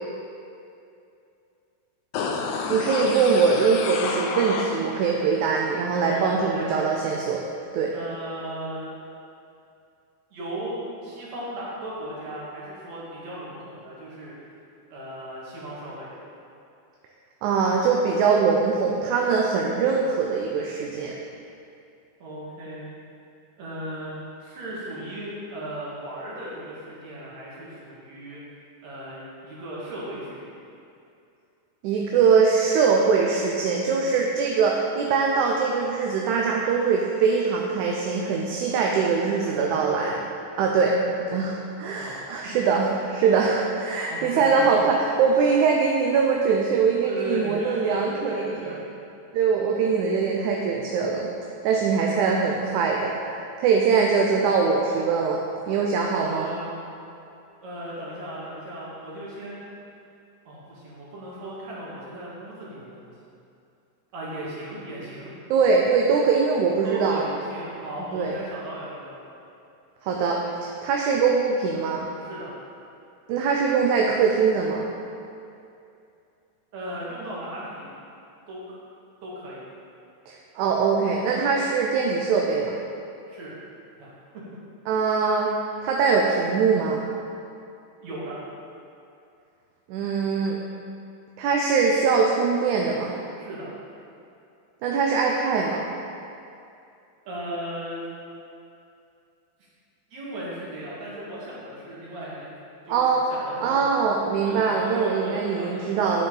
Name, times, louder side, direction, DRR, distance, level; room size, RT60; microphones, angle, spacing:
sound 1, 2.1-5.1 5.5-5.6, left 4 dB, 80° left, 2.1 m, -29 dB
voice 1, 2.7-7.4 7.7-7.9 17.4-21.1 31.8-40.2 40.6-48.8 49.3-51.3 51.6-55.4 55.7-56.5 65.5-67.2 68.1-68.3 70.0-72.1 73.3-74.9 80.3-82.7 84.9-85.5 85.8-87.0 89.9-90.6 91.4-93.1 94.8-95.8 102.9-103.2 103.6-106.3, right 5 dB, 80° right, -1 dB, 2.0 m, -22 dB
voice 2, 6.1-6.9 7.9-8.9 10.3-14.3 14.9-16.1 22.2-22.9 23.6-24.1 24.4-28.4 28.8-30.5 39.4-39.9 42.0-42.2 43.9-44.6 46.7-48.8 56.1-56.8 57.6-59.6 60.4-63.1 64.1-65.3 66.8-69.2 72.2-72.5 76.7-77.9 78.5-78.8 79.2-79.6 83.3-83.5 84.0-84.1 84.3-84.4 88.0-88.4 93.4-93.7 97.2-98.1 99.6-99.7 100.1-102.5 102.9-104.0 104.4-106.3, right 1 dB, 60° right, -7 dB, 3.0 m, -36 dB
9.2 x 7.1 x 3.9 m, 2.6 s
omnidirectional pair, 3.5 m